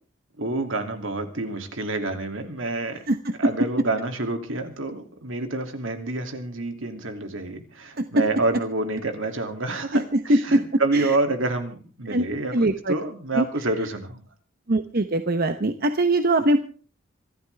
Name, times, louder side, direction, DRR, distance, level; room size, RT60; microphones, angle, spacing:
voice 1, 0.3-3.0 3.4-14.2, right 2 dB, 75° right, 6 dB, 2.7 m, -28 dB
voice 2, 10.3-10.6 10.9-11.1 12.1-12.3 12.5-12.9 13.4-13.5 14.7-16.6, right 1 dB, 50° right, 8 dB, 1.0 m, -21 dB
26.5 x 13.5 x 3.5 m, 0.38 s
head